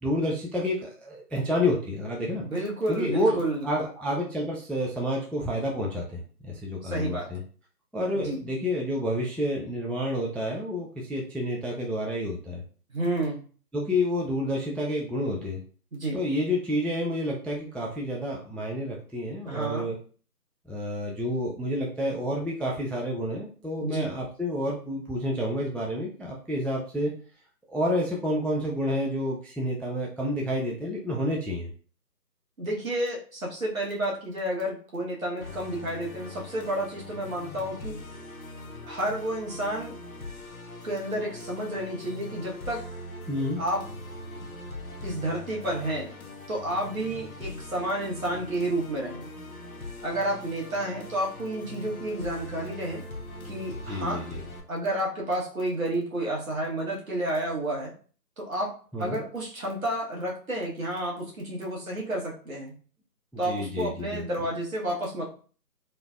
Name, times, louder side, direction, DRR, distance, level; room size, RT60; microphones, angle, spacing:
voice 1, 0.0-2.4 2.9-7.4 7.9-12.6 13.7-15.6 16.1-20.0 20.7-27.1 27.7-31.7 43.3-43.6 53.9-54.4 58.9-59.2 63.3-64.3, left 1 dB, 5° left, -2 dB, 0.3 m, -29 dB
voice 2, 2.4-3.6 6.8-7.3 8.1-8.4 12.9-13.4 15.9-16.2 19.5-19.9 23.8-24.1 32.6-38.0 38.8-39.9 40.8-42.8 43.6-43.8 45.0-46.1 46.5-49.2 50.0-53.0 53.4-54.2 54.7-57.9 58.4-58.7 59.0-62.7 63.4-65.2, right 1 dB, 55° right, -3 dB, 1.1 m, -30 dB
Musical instrument, 35.4-54.6, left 2 dB, 60° left, 0.6 m, -41 dB
3.2 x 2.1 x 2.3 m, 0.41 s
figure-of-eight pair, 180°, 49 cm